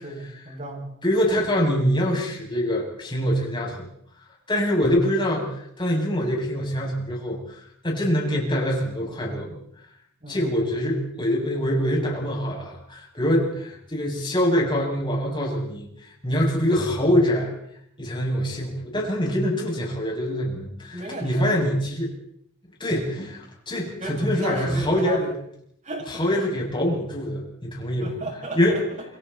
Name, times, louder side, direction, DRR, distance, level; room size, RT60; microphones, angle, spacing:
voice 1, 0.0-0.9 10.2-10.6 20.9-21.6 22.9-23.1 24.0-25.4 25.8-26.5 28.0-29.0, right 1 dB, 35° right, 0 dB, 7.2 m, -34 dB
voice 2, 1.0-3.9 4.5-7.4 7.8-9.6 10.3-15.9 16.2-17.5 18.0-22.1 22.8-25.2 26.1-28.1 28.6-28.8, equal, 25° left, -2 dB, 7.2 m, -24 dB
29.0 x 22.5 x 4.3 m, 0.71 s
head